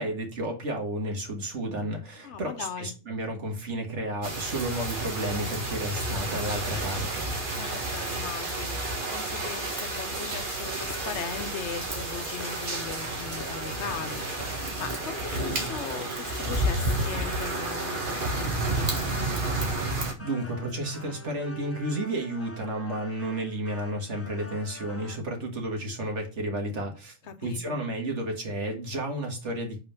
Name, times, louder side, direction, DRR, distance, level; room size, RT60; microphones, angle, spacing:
voice 1, 0.0-7.3 20.2-27.2 27.4-29.8, right 1 dB, 80° right, 2.2 m, -32 dB
voice 2, 2.2-2.9 7.6-18.9 27.3-27.8, left 7 dB, 75° left, 1.1 m, -39 dB
sound 1, 4.2-20.1, right 2 dB, 45° right, 1.7 m, -31 dB
sound 2, 10.6-25.2, left 1 dB, 15° left, 0.5 m, -45 dB
5.6 x 4.4 x 5.7 m
omnidirectional pair, 1.2 m